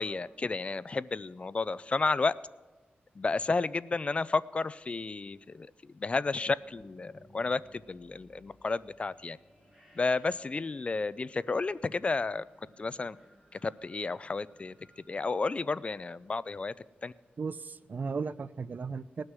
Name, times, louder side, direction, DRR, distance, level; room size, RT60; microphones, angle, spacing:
voice 1, 0.0-2.3 3.2-9.4 10.0-12.4 12.8-13.2 13.6-14.8 15.1-16.7 17.0-17.1, left 3 dB, 30° left, 17 dB, 0.3 m, -32 dB
sound 1, 6.4-16.2, equal, 5° right, 1.9 m, -62 dB
voice 2, 17.4-19.2, right 5 dB, 50° right, 16 dB, 0.4 m, -36 dB
18.5 x 6.4 x 6.1 m, 1.3 s
wide cardioid pair, 130°, 4 cm